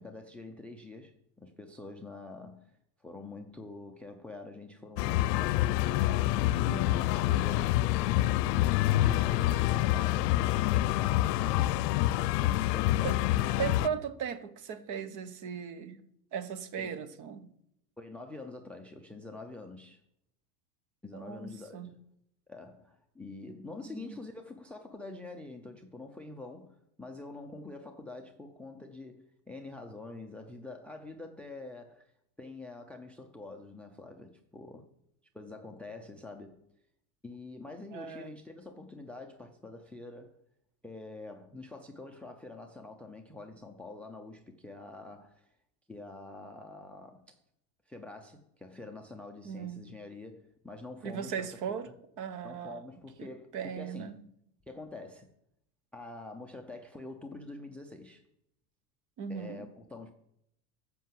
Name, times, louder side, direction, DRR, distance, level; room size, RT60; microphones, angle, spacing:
voice 1, 0.0-2.7 3.0-7.8 8.6-11.8 12.4-14.0 16.8-17.0 18.0-20.0 21.0-22.0 22.5-32.1 32.4-34.9 35.3-36.6 37.2-40.3 40.8-45.6 45.9-47.4 47.9-52.0 52.4-54.1 54.7-55.3 55.9-58.2 59.3-60.1, left 2 dB, 5° left, 0.5 m, -46 dB
sound 1, 5.0-13.9, left 15 dB, 75° left, 0.7 m, -27 dB
voice 2, 6.6-7.1 13.0-13.1 13.6-16.0 16.3-17.5 21.1-21.9 23.9-24.2 37.9-38.3 49.4-49.8 51.0-51.9 52.2-52.8 53.2-53.3 53.5-54.2 59.2-59.6, right 7 dB, 40° right, 1.3 m, -37 dB
14.0 x 5.8 x 7.6 m
supercardioid pair, 145°, 48 cm